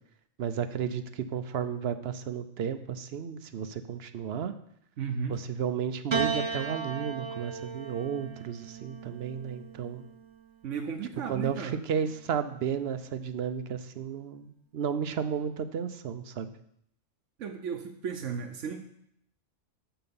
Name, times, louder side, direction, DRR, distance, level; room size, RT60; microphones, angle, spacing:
voice 1, 0.4-4.5 5.3-10.0 11.3-16.5, right 7 dB, 60° right, 10 dB, 0.8 m, -33 dB
voice 2, 5.0-5.4 10.6-11.8 17.4-18.8, right 6 dB, 80° right, 2 dB, 1.1 m, -34 dB
Piano, 6.1-10.6 11.6-12.4, right 6 dB, 30° right, 0.6 m, -36 dB
6.7 x 5.9 x 7.0 m, 0.71 s
omnidirectional pair, 1.3 m